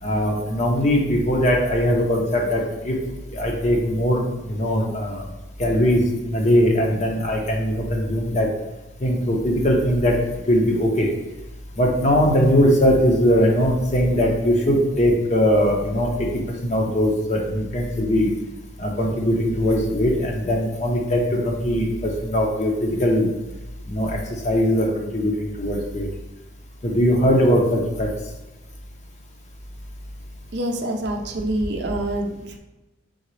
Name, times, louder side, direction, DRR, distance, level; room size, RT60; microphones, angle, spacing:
voice 1, 0.0-3.0 3.3-5.3 5.6-8.5 9.0-10.2 10.5-11.1 11.8-18.3 18.8-23.3 23.9-24.2 24.4-26.1 26.8-28.1, equal, 35° left, 0 dB, 0.7 m, -20 dB
voice 2, 30.5-32.6, right 1 dB, 55° right, 3 dB, 0.5 m, -26 dB
3.9 x 3.8 x 3.1 m, 1.1 s
head